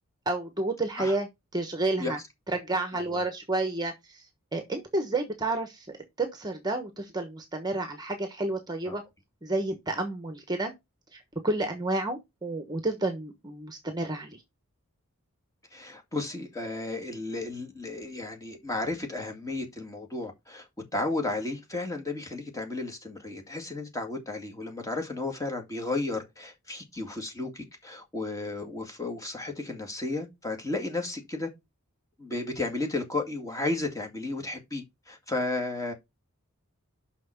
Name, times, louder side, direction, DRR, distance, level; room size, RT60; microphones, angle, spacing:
voice 1, 0.3-2.2 2.5-9.0 9.4-10.7 11.1-14.4, right 2 dB, 20° right, 1.1 m, -30 dB
voice 2, 15.7-20.6 20.9-31.5 32.2-35.9, left 2 dB, 15° left, 2.1 m, -33 dB
6.0 x 5.9 x 5.8 m
head